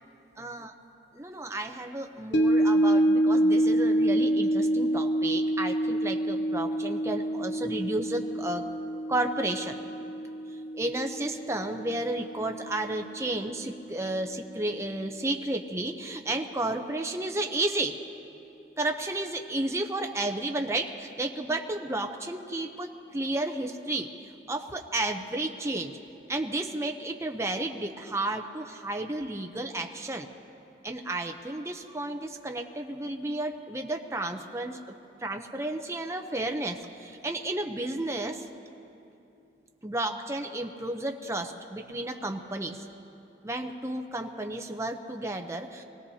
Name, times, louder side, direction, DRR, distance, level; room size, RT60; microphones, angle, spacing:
voice 1, 0.4-0.7 1.1-8.7 9.1-9.8 10.5-18.0 18.8-25.9 26.3-30.3 30.8-38.5 39.8-42.9 43.4-45.8, right 2 dB, 15° right, 4 dB, 0.6 m, -32 dB
sound 1, 2.3-12.7 13.1-13.2, right 1 dB, 85° left, 0.8 m, -27 dB
24.5 x 17.5 x 2.8 m, 2.8 s
head